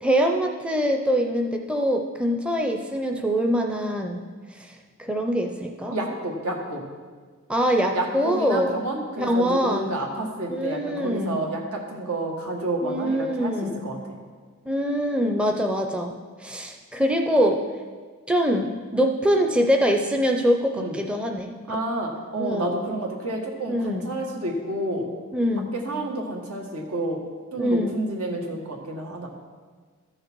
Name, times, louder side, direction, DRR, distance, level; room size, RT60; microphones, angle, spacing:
voice 1, 0.0-4.2 4.6-4.7 5.0-6.0 7.5-8.7 9.2-9.9 10.5-11.4 12.8-13.8 14.7-16.1 16.4-17.6 18.3-21.5 22.4-22.7 23.7-24.1 25.3-25.7 27.5-28.0, equal, 5° right, 3 dB, 0.5 m, -24 dB
voice 2, 5.9-6.8 7.9-14.0 20.8-21.0 21.7-25.1 25.7-27.2 27.5-29.3, right 1 dB, 85° right, 0 dB, 1.7 m, -30 dB
13.5 x 6.5 x 4.6 m, 1.5 s
head